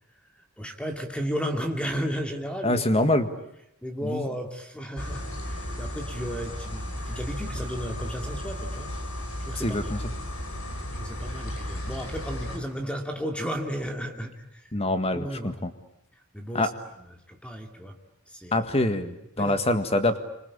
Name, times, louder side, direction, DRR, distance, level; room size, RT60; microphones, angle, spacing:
voice 1, 0.3-2.8 3.8-8.9 9.4-9.8 11.0-14.7 15.1-15.6 16.3-16.7 17.0-18.0 18.3-18.7 19.4-19.7, equal, 5° left, 4 dB, 2.5 m, -34 dB
voice 2, 2.6-3.3 4.0-4.3 9.6-10.0 14.7-15.7 16.5-16.7 18.5-20.2, left 1 dB, 30° left, 9 dB, 1.8 m, -25 dB
sound 1, 5.0-12.6, left 1 dB, 75° left, 5.5 m, -34 dB
27.0 x 25.5 x 8.5 m, 0.80 s
head